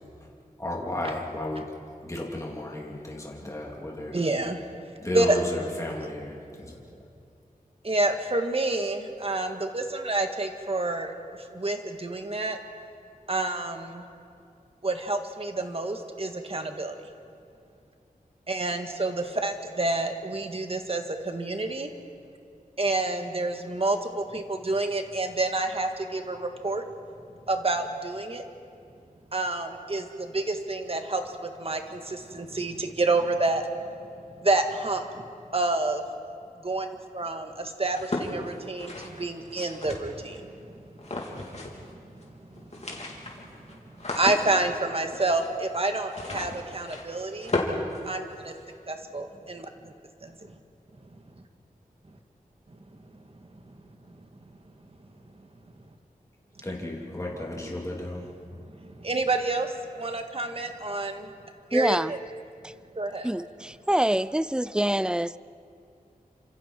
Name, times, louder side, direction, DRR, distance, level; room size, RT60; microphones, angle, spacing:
voice 1, 0.6-1.7 2.0-4.1 5.0-7.0 56.6-58.3, left 1 dB, 20° left, 3.0 m, -34 dB
voice 2, 4.1-4.6 5.1-5.4 7.8-12.6 13.3-14.0 14.8-17.0 18.5-21.9 22.8-26.9 27.5-28.5 29.3-33.7 34.4-36.0 36.6-47.5 48.0-48.5 48.9-49.9 50.2-50.5 51.1-51.2 52.9-53.0 53.4-53.7 54.1-54.2 54.5-54.6 57.6-57.7 58.5-61.3 61.7-62.2 62.9-63.3, right 2 dB, 40° right, 1.8 m, -29 dB
sound 1, 37.9-40.4 41.0-41.9 42.2-42.3 42.6-48.7, left 2 dB, 50° left, 3.5 m, -35 dB
voice 3, 61.7-62.1 63.2-65.3, right 1 dB, 5° right, 0.4 m, -25 dB
29.5 x 26.5 x 4.6 m
wide cardioid pair, 95°, 15 cm